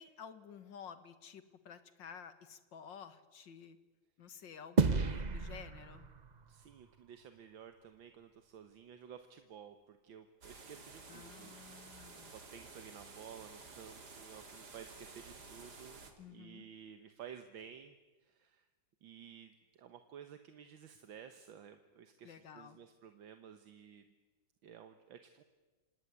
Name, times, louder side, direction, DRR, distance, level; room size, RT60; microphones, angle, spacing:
voice 1, 0.0-3.8 4.2-6.1 11.1-12.3 16.2-16.7 22.2-22.8, left 7 dB, 70° left, 12 dB, 2.2 m, -52 dB
sound 1, 4.8-7.4, right 4 dB, 40° right, 0.6 m, -33 dB
voice 2, 6.5-11.9 12.2-18.0 18.2-18.7 19.0-24.0 24.6-25.4, right 8 dB, 80° right, 8 dB, 1.9 m, -54 dB
sound 2, 10.4-16.1, right 3 dB, 55° right, 3.2 m, -53 dB
27.5 x 18.5 x 9.6 m, 1.2 s
omnidirectional pair, 2.1 m